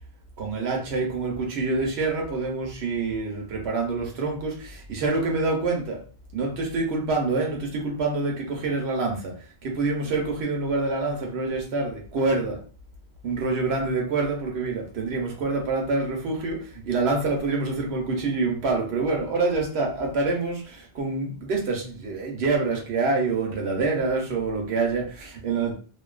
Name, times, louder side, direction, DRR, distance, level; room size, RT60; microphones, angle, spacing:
voice 1, 0.4-6.0 6.3-12.6 13.2-25.7, right 3 dB, 85° right, 1 dB, 1.0 m, -26 dB
2.6 x 2.3 x 2.3 m, 0.39 s
omnidirectional pair, 1.0 m